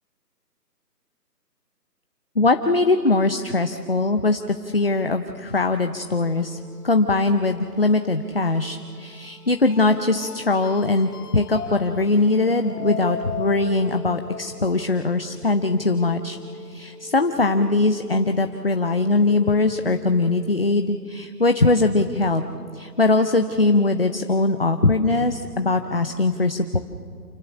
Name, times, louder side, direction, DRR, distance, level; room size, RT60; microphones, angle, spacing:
voice 1, 2.4-6.6 6.8-22.4 22.7-26.8, left 3 dB, 35° left, 7 dB, 0.7 m, -21 dB
sound 1, 6.1-20.5, left 5 dB, 65° left, 1.5 m, -39 dB
28.5 x 14.5 x 7.1 m, 2.3 s
figure-of-eight pair, 170°, 49 cm